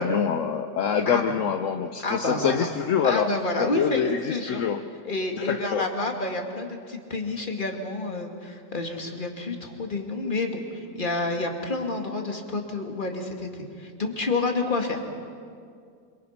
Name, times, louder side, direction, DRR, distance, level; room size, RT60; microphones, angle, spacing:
voice 1, 0.0-3.3 3.6-4.8 5.4-5.9, left 7 dB, 60° left, 7 dB, 0.9 m, -25 dB
voice 2, 1.1-1.4 2.0-2.7 3.0-4.6 5.0-15.0, left 2 dB, 25° left, 3 dB, 2.2 m, -29 dB
26.5 x 24.0 x 5.8 m, 2.3 s
omnidirectional pair, 2.0 m